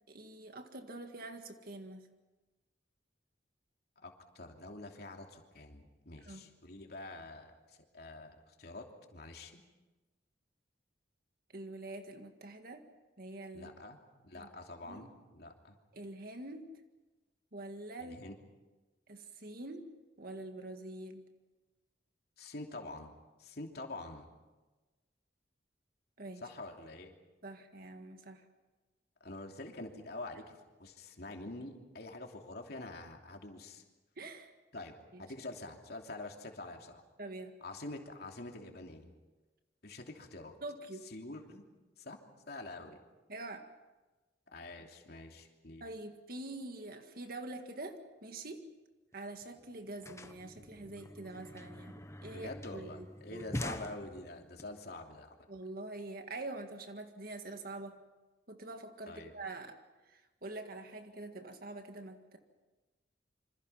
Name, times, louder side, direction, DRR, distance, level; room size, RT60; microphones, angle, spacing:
voice 1, 0.1-2.1 6.2-6.5 11.5-12.9 13.2-13.7 14.4-14.5 14.8-15.1 15.9-16.7 17.5-18.2 19.1-19.9 20.2-21.2 26.2-26.4 27.4-28.4 34.2-34.5 35.1-35.2 37.2-37.5 40.6-41.1 43.3-43.7 45.8-48.7 49.1-53.5 55.5-58.0 58.5-59.8 60.1-62.4, right 2 dB, 55° right, 6 dB, 1.9 m, -45 dB
voice 2, 4.0-7.5 7.9-8.8 9.1-9.6 13.5-14.0 14.2-15.8 18.0-18.3 22.4-23.1 23.4-24.3 26.4-27.1 29.2-30.5 30.8-33.8 34.7-34.9 35.2-37.0 37.6-39.1 39.8-40.5 41.1-41.6 42.0-42.2 42.5-43.0 44.5-45.8 52.2-55.3 59.1-59.3, left 2 dB, 60° left, 2 dB, 3.0 m, -46 dB
sound 1, 49.1-49.2 49.4-54.6, left 1 dB, 15° left, 1.2 m, -45 dB
27.5 x 25.5 x 5.8 m, 1.2 s
head